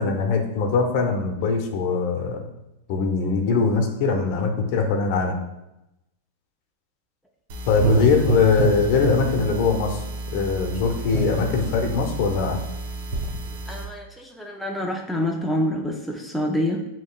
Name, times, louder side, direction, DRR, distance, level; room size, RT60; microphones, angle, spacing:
voice 1, 0.0-2.4 2.9-5.4 7.7-10.0 10.3-12.6, left 4 dB, 55° left, 3 dB, 0.8 m, -22 dB
sound 1, 7.5-13.8, right 2 dB, 65° right, 0.8 m, -27 dB
voice 2, 13.7-16.9, left 1 dB, ahead, 0 dB, 0.5 m, -27 dB
7.0 x 3.1 x 2.3 m, 0.89 s
hypercardioid pair, 125°, 0 cm